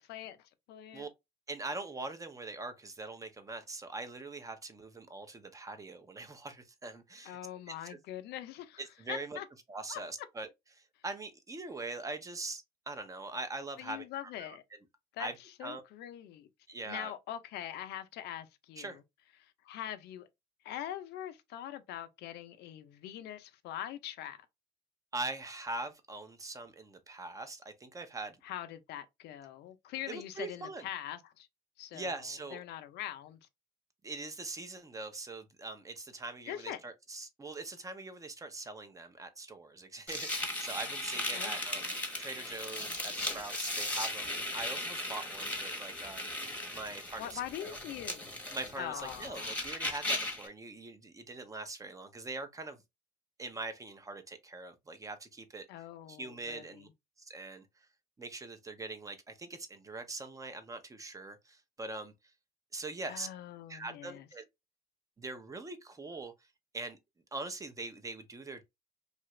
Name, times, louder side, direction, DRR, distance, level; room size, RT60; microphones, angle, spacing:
voice 1, 0.7-1.1 7.2-8.8 9.1-9.4 9.9-10.0 13.8-14.6 15.1-15.3 15.6-16.5 16.9-19.0 19.4-20.3 20.6-24.4 28.4-31.5 31.8-32.2 32.5-33.4 36.5-36.8 41.3-41.9 47.2-48.3 48.8-49.5 55.7-56.9 63.1-64.3, left 11 dB, 80° left, 0.5 m, -43 dB
voice 2, 1.5-7.4 7.9-8.0 8.8-9.4 9.7-10.5 10.7-14.0 14.4-14.6 15.2-15.8 16.7-17.1 18.8-19.0 25.1-28.4 30.1-30.9 31.9-32.6 34.0-46.3 46.7-47.8 48.5-52.8 53.4-55.7 56.1-56.9 57.2-57.7 58.2-62.1 62.7-63.3 63.7-64.5 65.2-66.3 66.7-67.0 67.3-68.6, right 3 dB, 20° right, 0.6 m, -42 dB
sound 1, 40.1-50.5, left 1 dB, 10° left, 1.0 m, -37 dB
2.8 x 2.4 x 3.1 m
cardioid pair, 110°, 17 cm